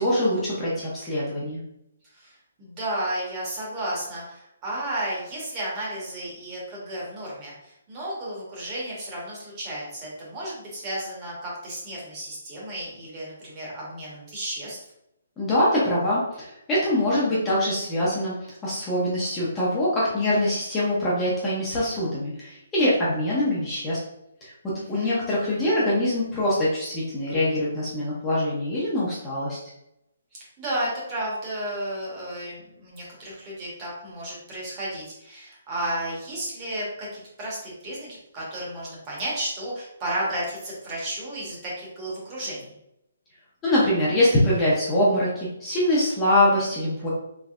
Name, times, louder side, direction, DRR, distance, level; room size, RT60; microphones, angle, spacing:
voice 1, 0.0-1.6 15.4-18.3 18.6-24.0 24.4-24.5 24.9-29.6 43.6-47.1, left 1 dB, 10° left, -8 dB, 0.7 m, -23 dB
voice 2, 2.1-14.8 24.7-25.1 30.3-42.6, right 1 dB, 20° right, -5 dB, 1.2 m, -33 dB
3.4 x 3.2 x 2.4 m, 0.82 s
hypercardioid pair, 165°, 0 cm